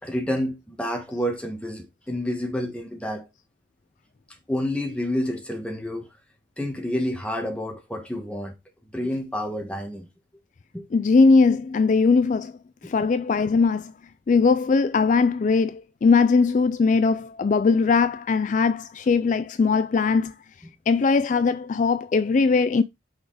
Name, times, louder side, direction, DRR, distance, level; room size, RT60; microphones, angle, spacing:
voice 1, 0.0-3.3 4.5-6.1 6.6-8.5 8.9-10.1 10.7-10.9 12.8-12.9, left 1 dB, 5° left, 1.6 m, -29 dB
voice 2, 10.9-12.5 12.8-13.9 14.3-20.3 20.9-22.8, left 4 dB, 45° left, 0.3 m, -20 dB
6.4 x 4.9 x 4.8 m
head